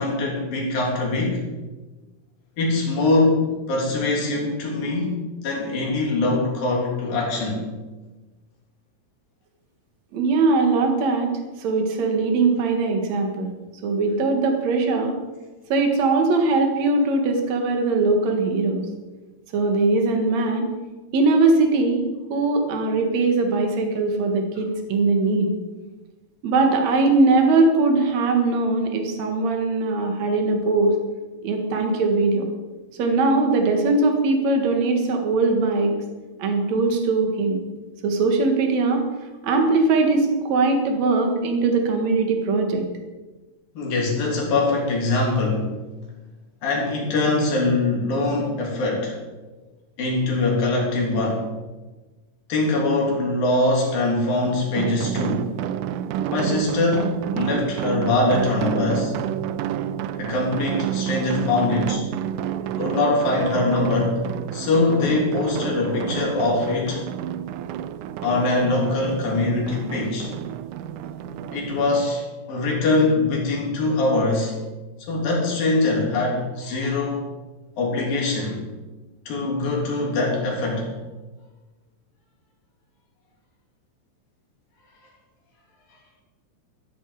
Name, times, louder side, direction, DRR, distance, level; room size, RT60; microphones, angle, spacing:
voice 1, 0.0-1.4 2.6-5.2 5.4-7.6 43.7-45.8 46.6-49.2 50.0-51.5 52.5-55.5 56.3-59.1 60.1-62.0 62.6-67.0 68.2-70.3 71.5-74.6 75.1-77.3 77.8-78.6 79.3-80.9, left 2 dB, 80° left, -2 dB, 4.8 m, -23 dB
voice 2, 10.1-11.3 11.6-13.5 13.8-15.2 15.7-18.8 19.5-20.7 21.1-25.5 26.4-30.9 31.4-32.5 33.0-35.9 36.4-37.6 38.0-39.0 39.4-42.8, right 3 dB, 55° right, 3 dB, 2.8 m, -20 dB
sound 1, 54.8-72.0, right 10 dB, 80° right, 1.9 m, -29 dB
13.5 x 11.0 x 4.9 m, 1.2 s
omnidirectional pair, 4.0 m